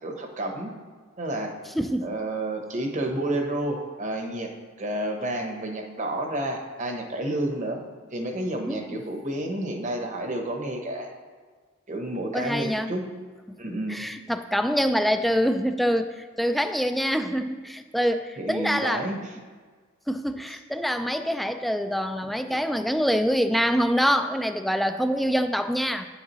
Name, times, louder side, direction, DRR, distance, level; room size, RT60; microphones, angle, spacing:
voice 1, 0.0-0.7 1.2-1.5 2.0-4.5 4.8-7.8 8.1-11.1 11.9-13.0 13.6-14.0 18.4-19.3, right 1 dB, 40° right, 4 dB, 0.9 m, -30 dB
voice 2, 1.7-2.1 8.7-9.0 12.3-12.9 13.7-19.1 20.1-26.1, equal, ahead, 8 dB, 0.3 m, -25 dB
9.1 x 8.1 x 3.0 m, 1.5 s
head